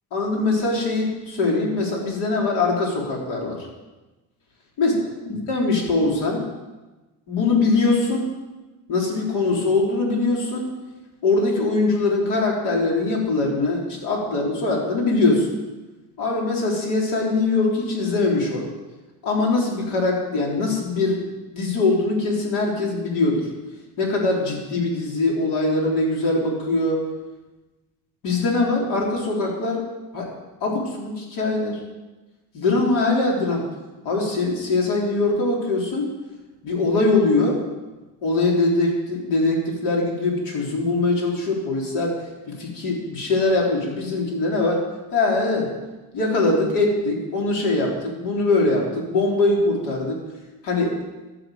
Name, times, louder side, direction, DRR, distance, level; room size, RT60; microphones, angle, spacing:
voice 1, 0.1-3.7 4.8-5.0 5.3-6.5 7.3-8.3 8.9-10.7 11.2-15.5 16.2-18.7 19.2-21.3 21.5-23.5 24.0-27.1 28.2-29.9 30.1-30.3 30.6-31.8 32.5-33.7 34.0-36.1 36.6-37.6 38.2-44.8 45.1-45.7 46.1-50.2 50.6-51.0, left 3 dB, 85° left, -1 dB, 3.8 m, -22 dB
13.0 x 7.8 x 7.8 m, 1.1 s
cardioid pair, 125°, 39 cm